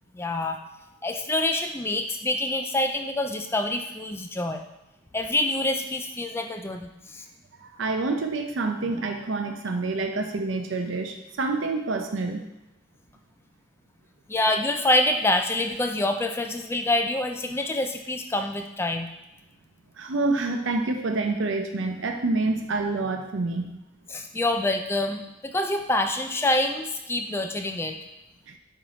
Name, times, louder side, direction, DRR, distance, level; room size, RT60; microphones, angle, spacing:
voice 1, 0.1-0.6 1.0-4.6 5.1-7.2 14.3-19.1 24.1-28.0, left 1 dB, 10° left, 5 dB, 0.3 m, -26 dB
voice 2, 7.6-12.4 20.0-23.8 28.5-28.6, right 3 dB, 65° right, 5 dB, 0.6 m, -27 dB
5.6 x 4.5 x 5.0 m, 0.95 s
head